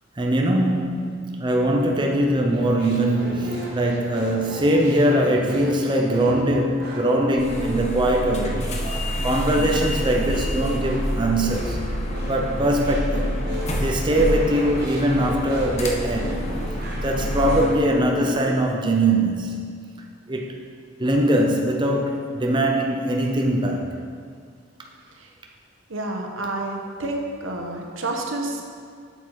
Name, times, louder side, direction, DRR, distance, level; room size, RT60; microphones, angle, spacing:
voice 1, 0.2-11.8 12.3-13.4 13.8-16.4 17.0-19.6 20.3-20.6 21.0-24.0, right 1 dB, 25° right, 1 dB, 0.6 m, -22 dB
sound 1, 2.4-18.4, equal, 50° right, 1.5 m, -35 dB
sound 2, 7.4-17.7, equal, 35° left, 0.8 m, -28 dB
voice 2, 25.9-28.6, right 2 dB, 85° right, 2 dB, 1.1 m, -29 dB
7.6 x 7.0 x 4.7 m, 2.1 s
head